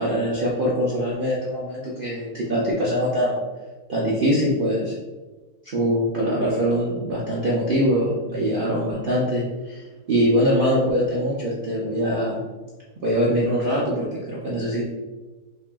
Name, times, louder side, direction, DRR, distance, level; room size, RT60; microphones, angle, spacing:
voice 1, 0.0-3.4 3.9-4.9 5.6-12.4 13.0-14.8, equal, 65° right, -5 dB, 0.5 m, -23 dB
3.2 x 2.9 x 3.4 m, 1.2 s
omnidirectional pair, 1.7 m